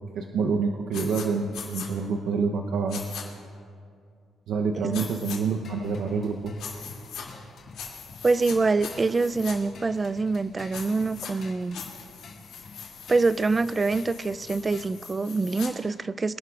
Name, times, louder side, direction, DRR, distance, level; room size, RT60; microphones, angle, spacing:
voice 1, 0.1-3.0 4.5-6.5, right 5 dB, 75° right, 3 dB, 0.7 m, -27 dB
sound 1, 0.9-1.2 1.5-1.9 2.9-3.2 4.9-5.4 6.6-7.2 7.7-8.6 8.8-9.5 10.7-11.3 11.7-15.7, left 7 dB, 85° left, 2.4 m, -40 dB
sound 2, 5.6-14.8, left 3 dB, 60° left, 1.9 m, -48 dB
voice 2, 8.2-11.8 13.1-16.4, right 3 dB, 30° right, 16 dB, 0.3 m, -25 dB
25.0 x 11.0 x 2.4 m, 2.4 s
cardioid pair, 90°, 0 cm